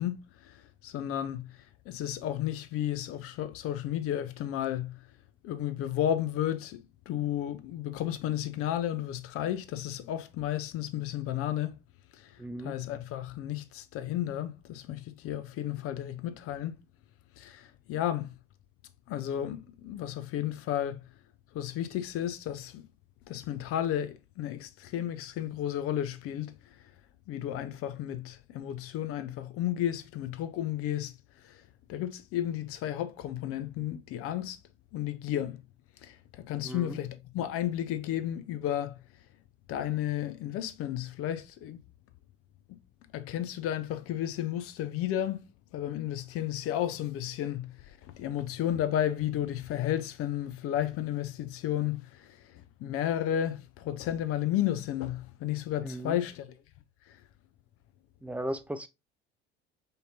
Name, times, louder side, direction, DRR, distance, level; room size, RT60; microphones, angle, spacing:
voice 1, 0.0-5.1 5.4-11.8 12.1-16.8 17.4-18.4 19.1-21.0 21.5-22.9 23.3-26.9 27.3-31.6 31.9-34.6 34.9-35.6 36.0-39.0 39.7-41.8 43.1-45.4 45.7-56.5 57.1-57.2, left 11 dB, 45° left, 0.6 m, -33 dB
voice 2, 12.4-12.8 36.6-37.0 55.8-56.2 58.2-58.9, right 1 dB, 5° right, 0.4 m, -36 dB
5.2 x 2.7 x 2.7 m
figure-of-eight pair, 65°, 31 cm